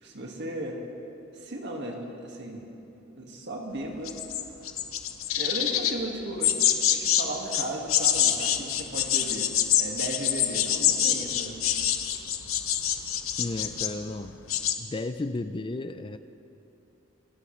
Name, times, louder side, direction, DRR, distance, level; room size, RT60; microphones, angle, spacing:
voice 1, 0.0-0.8 1.3-2.7 3.1-4.2 5.4-9.5 9.8-11.6, right 1 dB, 60° right, 1 dB, 1.9 m, -36 dB
sound 1, 4.1-5.9 6.4-7.2 7.5-14.0 14.3-14.7, left 10 dB, 90° left, 0.9 m, -25 dB
voice 2, 13.4-14.3 14.8-16.2, left 2 dB, 25° left, 10 dB, 0.4 m, -33 dB
27.0 x 12.5 x 3.2 m, 2.9 s
head